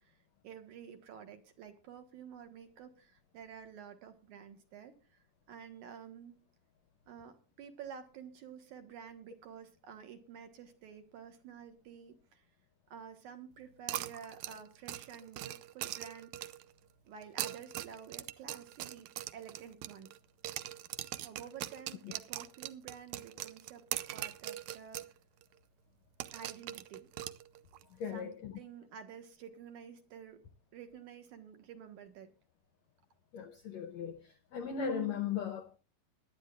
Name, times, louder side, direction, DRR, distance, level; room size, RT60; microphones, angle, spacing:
voice 1, 0.0-6.4 7.1-12.4 12.9-16.3 17.0-20.1 21.2-23.8 24.1-25.0 26.3-27.1 28.1-30.4 30.7-32.3, right 7 dB, 60° right, 2.6 m, -50 dB
sound 1, 13.9-16.7 17.2-20.2 20.4-25.1 25.4-25.5 26.2-27.8, right 14 dB, 90° right, 1.6 m, -41 dB
voice 2, 27.9-28.6 33.3-35.8, left 7 dB, 80° left, 1.6 m, -38 dB
21.5 x 10.5 x 2.4 m
omnidirectional pair, 4.2 m